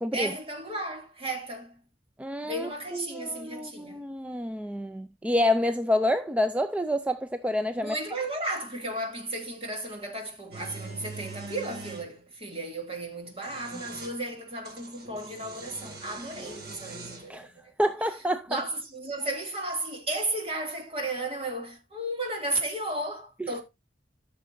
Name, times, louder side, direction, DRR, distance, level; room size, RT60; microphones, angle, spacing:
voice 1, 0.1-1.8 2.4-4.0 7.7-17.7 18.5-23.6, right 2 dB, 35° right, 2.5 m, -34 dB
voice 2, 2.2-8.0 17.3-17.5 17.8-18.6 23.4-23.5, left 1 dB, 10° right, 0.4 m, -28 dB
sound 1, 10.5-12.1 13.2-14.2 14.6-17.3, right 3 dB, 65° right, 2.5 m, -42 dB
14.0 x 6.6 x 2.6 m
head